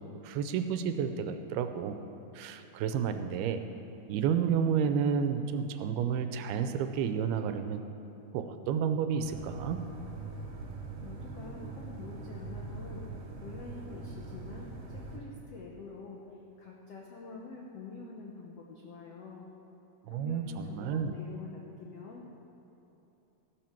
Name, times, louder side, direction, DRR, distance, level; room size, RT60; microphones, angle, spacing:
voice 1, 0.2-2.0 2.4-3.6 4.1-7.8 8.3-9.8 20.1-21.1, right 7 dB, 90° right, 8 dB, 2.6 m, -31 dB
sound 1, 9.2-15.2, right 3 dB, 65° right, 3.3 m, -42 dB
voice 2, 11.0-13.1 13.4-19.5 20.1-22.3, left 4 dB, 80° left, -1 dB, 1.4 m, -46 dB
15.0 x 12.5 x 4.5 m, 2.9 s
omnidirectional pair, 4.4 m